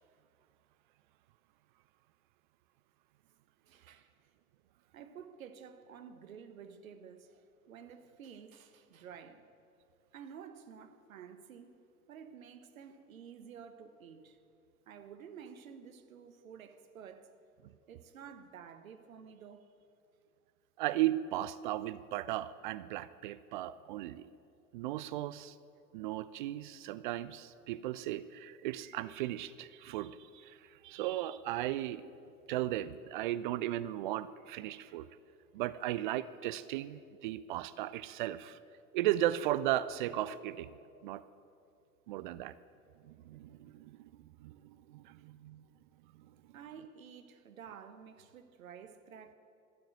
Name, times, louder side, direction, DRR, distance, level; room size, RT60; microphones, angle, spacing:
voice 1, 3.7-4.3 4.9-9.4 10.1-11.7 12.1-14.4 14.9-17.3 17.9-19.7 46.5-49.3, right 7 dB, 65° right, 1.2 m, -51 dB
voice 2, 20.8-24.3 24.7-25.6 25.9-32.1 32.5-35.1 35.5-38.6 38.9-40.7 41.0-41.2 42.1-42.6 43.0-44.1 44.4-45.6, right 14 dB, 35° right, 0.4 m, -36 dB
12.5 x 12.0 x 9.0 m
figure-of-eight pair, 85°, 44 cm